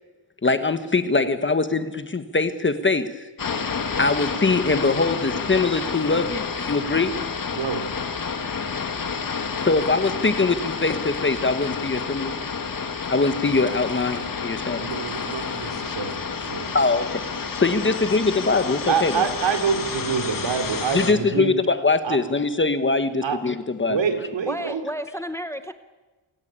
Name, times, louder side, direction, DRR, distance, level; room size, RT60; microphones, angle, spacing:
voice 1, 0.4-3.1 4.0-7.1 9.6-12.3 13.1-14.9 16.7-17.2 17.5-19.3 20.9-24.0, left 3 dB, 25° left, 10 dB, 1.2 m, -22 dB
sound 1, 3.4-21.1, left 5 dB, 45° left, 2.2 m, -30 dB
voice 2, 7.5-7.9 14.1-14.2 14.7-16.7 18.9-21.5 22.0-22.2 23.2-23.4 23.9-24.8, right 6 dB, 70° right, 8 dB, 3.1 m, -26 dB
voice 3, 24.5-25.7, equal, 5° left, 10 dB, 0.8 m, -31 dB
27.5 x 18.0 x 8.8 m, 1.2 s
wide cardioid pair, 175°, 47 cm